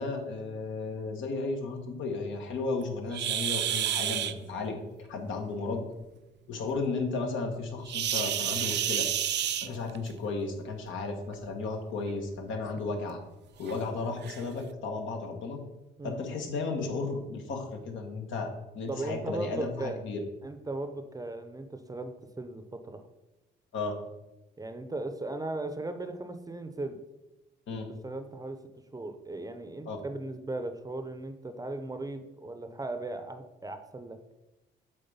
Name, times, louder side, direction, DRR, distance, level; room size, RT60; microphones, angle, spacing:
voice 1, 0.0-4.8 5.1-5.8 6.5-9.1 9.6-13.2 13.6-15.6 16.0-20.3 23.7-24.0 27.7-27.9 29.8-30.0, left 3 dB, 75° left, 3 dB, 1.4 m, -34 dB
sound 1, 3.1-4.3 7.9-10.1 11.3-11.5 12.1-12.2 12.8-12.9 13.7-13.8 14.2-14.4, right 10 dB, 60° right, 0.5 m, -30 dB
voice 2, 18.9-20.0 20.4-23.0 24.6-27.0 27.7-28.6 28.9-34.2, right 2 dB, 20° right, 8 dB, 0.7 m, -37 dB
7.8 x 3.7 x 5.4 m, 1.0 s
cardioid pair, 90°, 20 cm